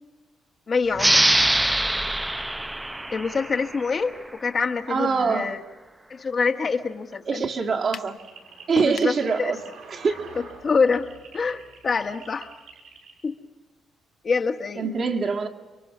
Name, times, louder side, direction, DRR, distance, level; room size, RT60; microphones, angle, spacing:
voice 1, 0.7-1.2 3.1-5.6 6.1-7.4 8.8-9.5 10.6-11.1 11.3-12.5 13.2-13.3 14.2-14.9, left 5 dB, 40° left, 6 dB, 1.4 m, -25 dB
sound 1, 0.9-4.2, right 1 dB, 10° right, 0.7 m, -23 dB
voice 2, 4.9-5.6 7.3-8.1 8.7-9.6 9.9-10.1 14.8-15.5, right 5 dB, 50° right, 1 dB, 2.4 m, -24 dB
sound 2, 7.9-8.2 8.8-9.2, left 8 dB, 65° left, 0.8 m, -35 dB
sound 3, 8.1-13.1, right 4 dB, 75° right, 6.4 m, -46 dB
29.5 x 23.5 x 6.1 m, 1.2 s
cardioid pair, 90°, 0 cm